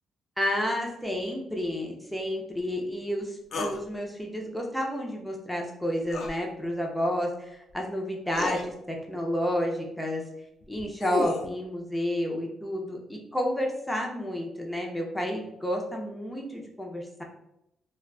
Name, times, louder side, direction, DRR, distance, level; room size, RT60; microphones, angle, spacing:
voice 1, 0.4-10.2 10.7-17.2, equal, 5° left, 0 dB, 0.5 m, -31 dB
sound 1, 3.5-3.8 6.1-6.4 7.7-7.8 8.3-8.6 10.6-11.5, left 3 dB, 55° left, 0.3 m, -31 dB
2.4 x 2.2 x 2.3 m, 0.82 s
cardioid pair, 90°, 0 cm